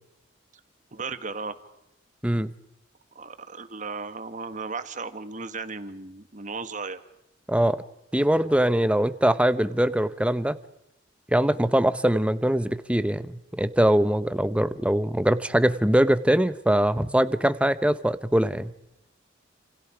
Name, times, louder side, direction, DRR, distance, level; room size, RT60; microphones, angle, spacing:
voice 1, 0.9-1.6 3.1-7.0, right 4 dB, 40° right, 11 dB, 1.5 m, -35 dB
voice 2, 7.5-7.8 8.1-10.6 11.3-18.7, right 1 dB, 5° right, 13 dB, 0.8 m, -22 dB
29.0 x 28.0 x 5.0 m, 0.83 s
head